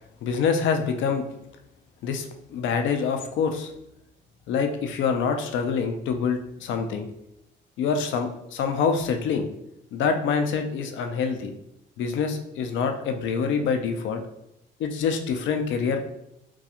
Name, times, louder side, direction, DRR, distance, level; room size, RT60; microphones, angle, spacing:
voice 1, 0.2-1.3 2.0-3.7 4.5-7.1 7.8-9.5 9.9-11.5 12.0-14.2 14.8-16.1, left 6 dB, 75° left, 6 dB, 0.4 m, -26 dB
2.3 x 2.3 x 2.8 m, 0.82 s
cardioid pair, 90°, 20 cm